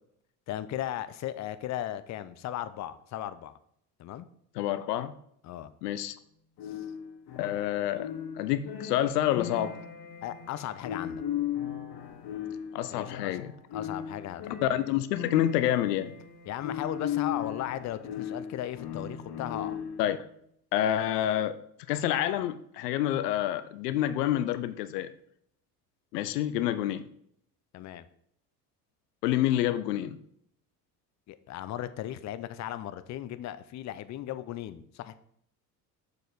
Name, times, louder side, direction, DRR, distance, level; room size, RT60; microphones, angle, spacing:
voice 1, 0.5-3.5 4.0-4.3 5.4-5.7 6.7-6.8 10.2-11.2 12.9-13.4 13.7-14.4 16.5-19.8 27.7-28.1 31.3-35.2, left 12 dB, 35° left, 13 dB, 0.6 m, -36 dB
voice 2, 4.6-5.1 5.8-6.2 7.4-8.1 8.4-9.8 12.7-13.5 14.6-16.1 20.0-20.2 20.7-21.6 21.9-25.1 26.1-27.0 29.2-30.2, left 12 dB, 80° left, 14 dB, 0.6 m, -28 dB
sound 1, 6.6-20.1, left 9 dB, 50° left, 1.1 m, -37 dB
6.6 x 4.9 x 4.0 m, 0.69 s
hypercardioid pair, 65°, 48 cm